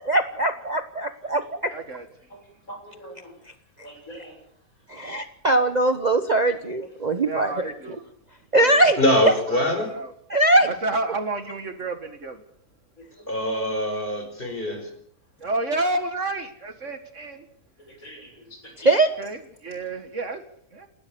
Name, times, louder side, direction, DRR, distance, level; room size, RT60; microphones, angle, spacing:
voice 1, 0.1-1.7 4.9-7.7 8.5-9.0 10.3-10.7 18.8-19.1, right 2 dB, 30° right, 1.0 m, -21 dB
voice 2, 1.7-2.1 7.3-8.0 8.5-10.1 10.7-12.4 15.4-17.5 19.2-20.4 20.8-20.9, right 2 dB, 55° right, 2.2 m, -30 dB
voice 3, 2.7-3.3 3.8-4.4 7.1-7.2 13.1-13.3 14.6-14.8 17.8-19.0, right 1 dB, 65° left, 7.1 m, -43 dB
voice 4, 9.0-9.9 13.3-14.8, left 1 dB, 35° left, 5.3 m, -23 dB
29.0 x 12.5 x 7.1 m
omnidirectional pair, 1.6 m